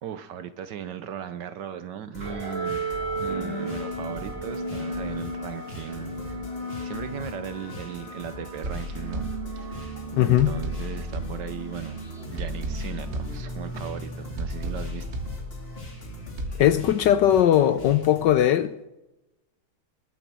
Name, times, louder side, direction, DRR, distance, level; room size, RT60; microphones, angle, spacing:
voice 1, 0.0-6.4 6.8-12.0 12.3-15.1, right 9 dB, 65° right, 1.2 m, -37 dB
sound 1, 2.1-18.3, left 1 dB, 30° left, 2.5 m, -41 dB
sound 2, 2.2-17.0, right 2 dB, 85° right, 7.5 m, -36 dB
sound 3, 8.6-9.9 10.4-11.9 12.4-13.9 14.4-15.9 16.4-16.6, equal, 35° right, 1.5 m, -34 dB
voice 2, 10.1-10.5 16.6-18.7, left 11 dB, 70° left, 1.1 m, -19 dB
20.5 x 7.0 x 6.2 m
omnidirectional pair, 2.3 m